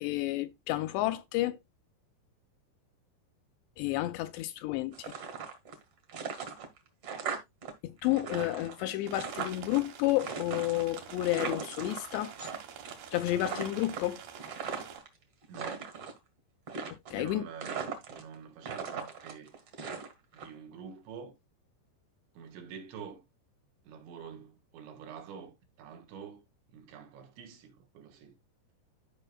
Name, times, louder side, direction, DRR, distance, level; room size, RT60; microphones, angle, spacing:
voice 1, 0.0-1.6 3.8-5.1 7.8-12.3 13.1-14.2 16.9-17.5, left 16 dB, 80° left, 2.7 m, -31 dB
sound 1, 4.9-5.8 6.1-7.7 8.0-9.8 10.2-12.6 12.8-13.1 13.4-15.1 15.4-16.2 16.7-17.3 17.6-18.3 18.6-20.5, right 6 dB, 50° right, 2.0 m, -38 dB
voice 2, 8.8-9.2 15.5-16.0 17.1-19.6 20.3-21.3 22.4-23.2 23.9-26.4 26.7-28.3, right 7 dB, 80° right, 3.8 m, -47 dB
sound 2, 9.1-15.0, right 8 dB, 65° right, 3.0 m, -47 dB
14.5 x 5.4 x 2.4 m
omnidirectional pair, 5.2 m